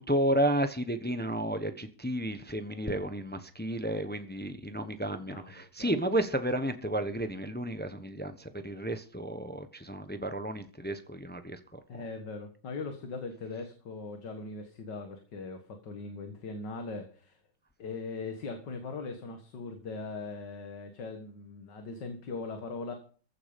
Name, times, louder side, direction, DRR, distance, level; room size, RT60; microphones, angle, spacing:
voice 1, 0.0-12.0, right 1 dB, 15° left, 9 dB, 0.4 m, -32 dB
voice 2, 11.9-17.4 17.8-22.9, left 3 dB, 65° left, 5 dB, 2.2 m, -40 dB
15.0 x 9.6 x 5.2 m, 0.42 s
omnidirectional pair, 2.1 m